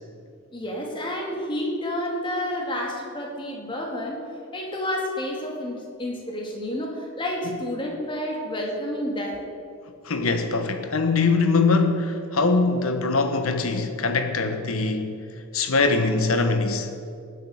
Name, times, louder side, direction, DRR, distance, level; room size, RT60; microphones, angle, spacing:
voice 1, 0.5-4.2 4.5-9.4, left 1 dB, 25° left, 2.4 m, -30 dB
voice 2, 10.0-15.1 15.5-16.9, left 3 dB, 85° left, 1.3 m, -22 dB
18.0 x 7.6 x 6.6 m
head